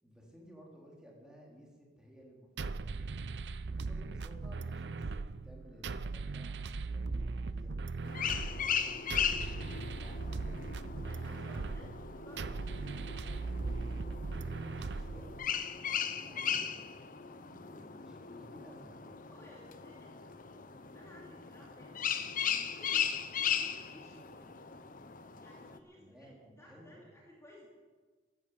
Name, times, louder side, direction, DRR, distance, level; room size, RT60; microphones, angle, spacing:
voice 1, 0.0-2.5 2.8-3.1 3.7-7.8 8.4-8.9 9.9-10.5 10.8-11.7 14.6-15.4 15.8-16.7 17.4-19.1 25.9-27.1, equal, 5° right, -2 dB, 3.4 m, -56 dB
sound 1, 2.6-15.6, right 3 dB, 65° right, 0.6 m, -39 dB
sound 2, 8.0-25.8, left 8 dB, 50° left, 0.9 m, -38 dB
voice 2, 8.1-8.7 11.0-11.9 12.1-12.6 19.3-20.3 20.9-22.0 22.5-24.5 25.1-27.7, equal, 15° left, -3 dB, 2.7 m, -57 dB
14.5 x 11.5 x 7.9 m, 1.4 s
head